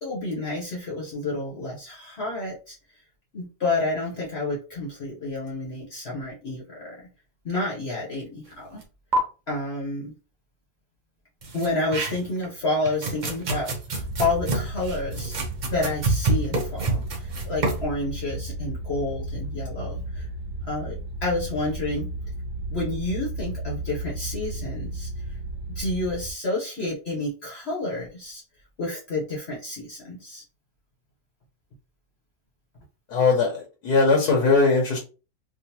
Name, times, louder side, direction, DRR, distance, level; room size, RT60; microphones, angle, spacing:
voice 1, 0.0-2.8 3.3-7.1 7.4-8.8 9.5-10.1 11.5-15.3 15.7-20.3 20.7-22.1 22.7-25.4 25.7-28.4 28.8-30.4, left 2 dB, 45° left, 1.1 m, -30 dB
sound 1, 8.8-8.9 9.1-9.2 11.4-12.4 12.9-17.8, right 3 dB, 45° right, 0.6 m, -27 dB
sound 2, 14.0-26.3, right 1 dB, 90° right, 1.1 m, -34 dB
voice 2, 33.1-35.0, left 4 dB, 80° left, 1.5 m, -20 dB
3.6 x 2.5 x 2.8 m
omnidirectional pair, 1.7 m